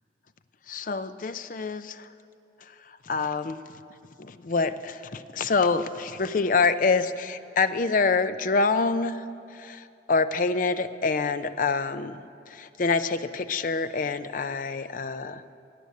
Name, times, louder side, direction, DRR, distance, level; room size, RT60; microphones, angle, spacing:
voice 1, 0.7-2.1 2.6-3.6 4.2-15.6, left 4 dB, 50° left, 12 dB, 0.5 m, -26 dB
17.5 x 6.8 x 9.4 m, 2.5 s
head